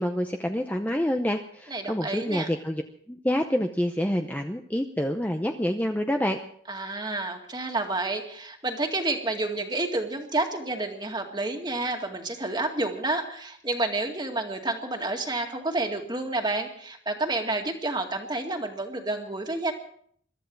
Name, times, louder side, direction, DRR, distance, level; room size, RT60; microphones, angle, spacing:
voice 1, 0.0-2.8 3.1-6.4, equal, 10° left, 5 dB, 0.7 m, -27 dB
voice 2, 1.7-2.5 6.7-19.7, right 2 dB, 20° right, 3 dB, 2.1 m, -29 dB
22.5 x 13.0 x 4.7 m, 0.62 s
head